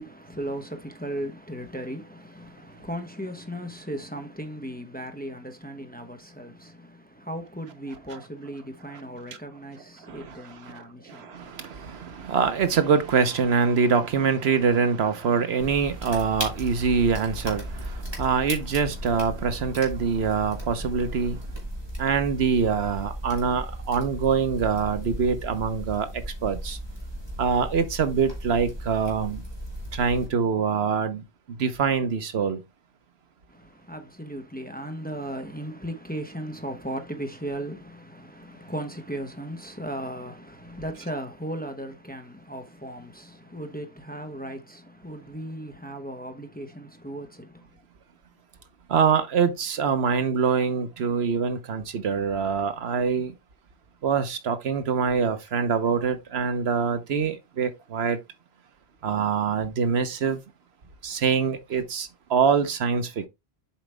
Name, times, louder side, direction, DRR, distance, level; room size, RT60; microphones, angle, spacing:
voice 1, 0.0-11.5 33.5-47.8, right 1 dB, 10° left, 1.0 m, -37 dB
voice 2, 10.0-21.5 22.0-26.1 26.4-26.8 27.4-29.4 29.9-31.2 31.6-32.6 48.9-53.3 54.0-58.2 59.0-60.4 61.0-63.3, right 6 dB, 75° right, 1.1 m, -24 dB
sound 1, 15.6-30.3, equal, 25° right, 2.5 m, -36 dB
7.3 x 5.0 x 3.3 m
omnidirectional pair, 1.1 m